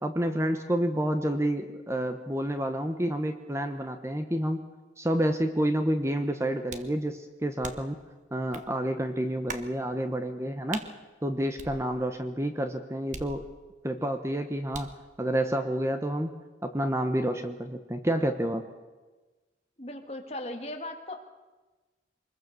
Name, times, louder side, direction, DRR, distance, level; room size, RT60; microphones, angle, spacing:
voice 1, 0.0-4.7 5.0-8.0 8.3-10.8 11.2-13.4 13.8-14.9 15.2-16.3 16.6-18.7, right 1 dB, 15° right, 7 dB, 1.1 m, -29 dB
sound 1, 6.7-7.0 7.6-8.0 8.5-8.7 9.5-9.7 10.7-10.9 11.6-12.2 13.1-13.8 14.7-15.0, right 4 dB, 40° right, 1.3 m, -41 dB
voice 2, 19.8-21.2, left 1 dB, 35° left, 4 dB, 2.2 m, -38 dB
24.5 x 21.5 x 6.8 m, 1.2 s
head